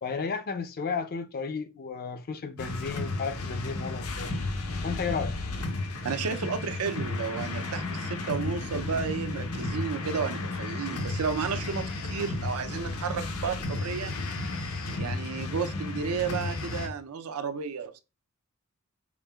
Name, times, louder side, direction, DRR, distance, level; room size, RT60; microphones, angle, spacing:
voice 1, 0.0-4.4 4.8-5.4, left 5 dB, 45° left, 0.4 m, -33 dB
sound 1, 2.6-16.9, left 2 dB, 75° left, 0.7 m, -33 dB
voice 2, 6.0-14.1 14.7-18.0, right 6 dB, 75° right, 0.5 m, -32 dB
5.0 x 2.8 x 2.2 m
head